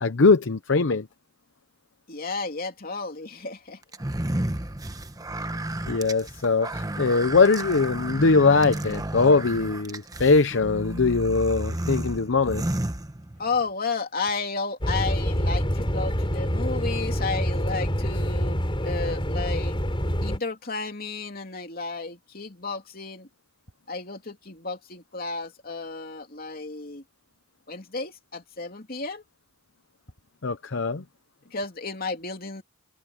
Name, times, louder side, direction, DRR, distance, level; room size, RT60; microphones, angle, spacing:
voice 1, 0.0-1.1 5.9-12.7 30.4-31.0, left 4 dB, 65° left, 0.7 m, -21 dB
voice 2, 2.1-3.8 13.4-18.6 18.8-19.8 20.2-23.3 23.9-27.0 27.7-29.2 31.5-32.6, left 4 dB, 45° left, 3.1 m, -32 dB
sound 1, 3.9-13.6, right 1 dB, 15° right, 1.0 m, -32 dB
sound 2, 14.8-20.4, equal, 25° left, 5.1 m, -26 dB
head